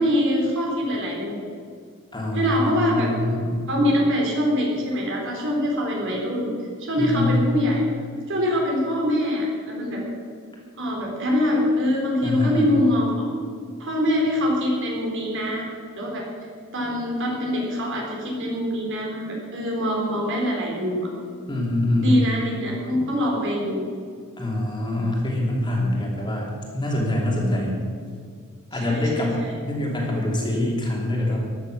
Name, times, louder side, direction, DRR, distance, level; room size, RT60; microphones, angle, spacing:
voice 1, 0.0-1.4 2.3-3.1 3.7-6.5 6.8-7.8 8.3-10.0 10.8-13.3 13.8-15.7 16.0-16.3 16.7-21.1 22.0-23.9 28.7-29.5, equal, 60° right, -1 dB, 4.0 m, -24 dB
voice 2, 2.1-3.6 7.0-7.4 12.2-12.8 21.5-22.3 24.4-27.7 28.7-31.4, left 1 dB, 20° left, -2 dB, 3.0 m, -24 dB
14.5 x 11.0 x 6.4 m, 2.1 s
head